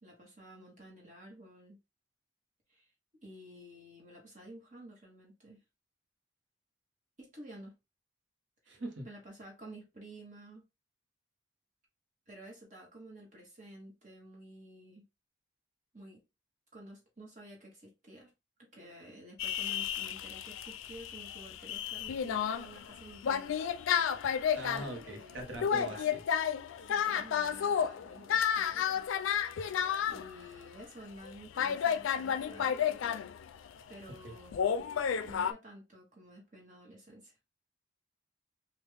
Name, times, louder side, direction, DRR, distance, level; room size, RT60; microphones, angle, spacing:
voice 1, 0.0-1.8 2.7-2.9 3.2-5.6 7.2-7.8 8.6-8.8 9.0-10.6 12.3-15.1 15.9-16.2 16.7-18.3 18.6-23.5 25.1-25.5 25.7-26.1 26.8-29.1 30.0-33.3 33.9-34.9 35.2-37.3, right 1 dB, 40° right, 1.1 m, -51 dB
voice 2, 8.7-9.1 24.5-26.2 34.1-34.4, right 1 dB, 75° right, 1.0 m, -42 dB
sound 1, 19.4-30.3 30.8-30.9 31.2-31.3 31.6-33.8 34.5-35.5, left 8 dB, 85° left, 0.3 m, -32 dB
3.3 x 2.3 x 3.3 m
head